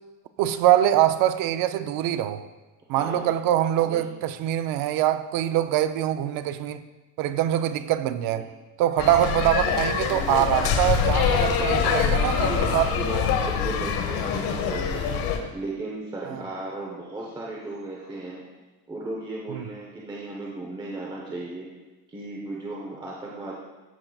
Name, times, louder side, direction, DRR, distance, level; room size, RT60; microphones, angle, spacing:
voice 1, 0.4-2.4 2.9-6.8 7.2-8.5 8.8-12.9 15.4-15.5 16.3-16.4 19.5-19.6, right 12 dB, 65° right, 0.5 m, -24 dB
voice 2, 2.9-3.3 3.8-4.0 8.3-8.5 10.1-10.5 11.2-15.1 15.5-18.4 18.9-21.7 22.1-23.5, right 2 dB, 10° right, 0.8 m, -36 dB
sound 1, 9.0-15.4, left 7 dB, 65° left, 1.0 m, -24 dB
13.5 x 6.6 x 2.3 m
cardioid pair, 165°, 37 cm